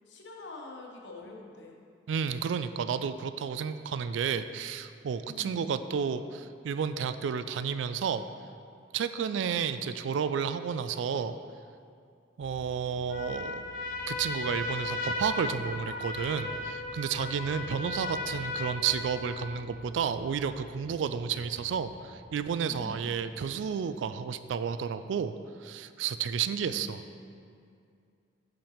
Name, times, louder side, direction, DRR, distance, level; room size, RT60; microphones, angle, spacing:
voice 1, 0.1-1.8 5.3-5.7 9.3-9.5 17.5-18.1 22.7-23.1 26.6-27.4, left 2 dB, 80° left, 0 dB, 1.0 m, -47 dB
voice 2, 2.1-8.2 8.9-11.4 12.4-13.6 14.1-25.3 25.6-27.0, right 7 dB, 85° right, 11 dB, 0.3 m, -31 dB
sound 1, 12.4-24.3, right 3 dB, 55° right, 0.7 m, -53 dB
Trumpet, 13.1-19.6, left 2 dB, 50° left, 0.7 m, -36 dB
5.6 x 5.2 x 5.6 m, 2.3 s
head